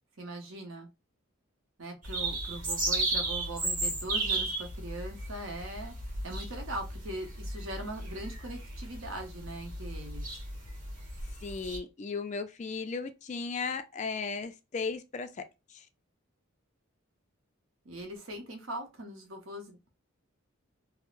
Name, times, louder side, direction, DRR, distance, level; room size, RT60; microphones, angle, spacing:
voice 1, 0.2-0.9 1.8-10.3 17.8-19.8, right 1 dB, 70° right, 0.9 m, -41 dB
sound 1, 2.0-11.8, right 2 dB, 40° right, 1.3 m, -34 dB
voice 2, 11.4-15.4 15.7-15.9, left 4 dB, 35° left, 0.3 m, -36 dB
3.5 x 2.0 x 2.4 m
head